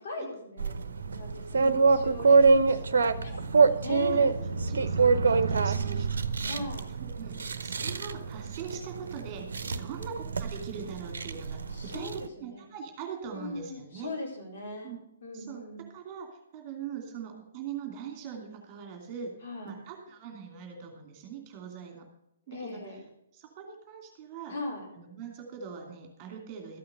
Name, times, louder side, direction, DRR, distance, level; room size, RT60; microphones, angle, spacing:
voice 1, 0.0-2.8 3.2-3.5 3.8-5.1 6.4-6.9 9.7-9.9 11.7-12.6 13.3-14.9 15.2-15.9 19.4-19.8 22.5-23.0 24.5-24.9, left 2 dB, 45° left, -1 dB, 4.5 m, -40 dB
sound 1, 0.6-12.3, right 4 dB, 60° right, 0.8 m, -26 dB
voice 2, 3.2-3.6 4.1-4.3 4.7-14.1 14.8-15.1 15.3-19.4 19.6-22.1 22.5-22.8 23.3-24.5 24.9-26.8, right 7 dB, 30° right, 2 dB, 2.7 m, -42 dB
13.5 x 8.6 x 5.4 m, 0.81 s
figure-of-eight pair, 125°, 0 cm